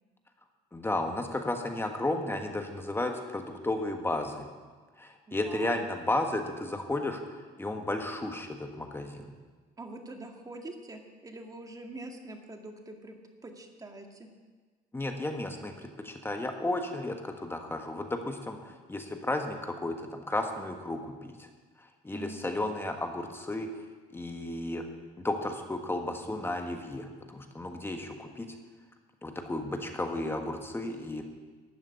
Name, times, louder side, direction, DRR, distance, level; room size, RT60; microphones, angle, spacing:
voice 1, 0.7-4.5 5.0-9.3 14.9-21.5 22.0-23.7 24.1-24.8 25.2-28.5 29.2-31.2, left 2 dB, 15° left, 4 dB, 1.4 m, -33 dB
voice 2, 5.3-5.8 9.8-13.2 13.4-14.3 22.1-22.4, right 2 dB, 20° right, 3 dB, 1.9 m, -44 dB
12.5 x 7.2 x 9.8 m, 1.4 s
cardioid pair, 110°, 17 cm